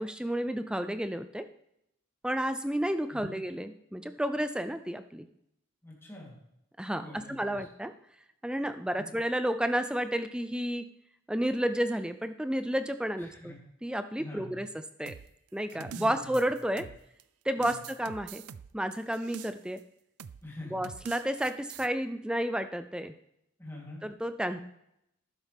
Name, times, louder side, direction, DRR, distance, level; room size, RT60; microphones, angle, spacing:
voice 1, 0.0-1.5 2.2-5.3 6.8-7.9 8.4-10.8 11.3-13.5 13.8-15.2 15.5-16.9 17.4-18.4 18.7-19.8 20.7-23.1 24.0-24.6, equal, 5° right, 10 dB, 0.4 m, -31 dB
voice 2, 5.8-6.4 7.0-7.6 8.9-9.1 13.2-13.6 14.2-14.6 15.7-16.8 17.6-17.8 20.4-20.8 23.6-24.0, left 1 dB, 10° left, -5 dB, 3.2 m, -45 dB
sound 1, 15.1-17.2 17.6-19.8 20.2-20.4 20.8-21.9, right 7 dB, 90° right, 0.4 m, -45 dB
12.0 x 9.8 x 3.5 m, 0.80 s
head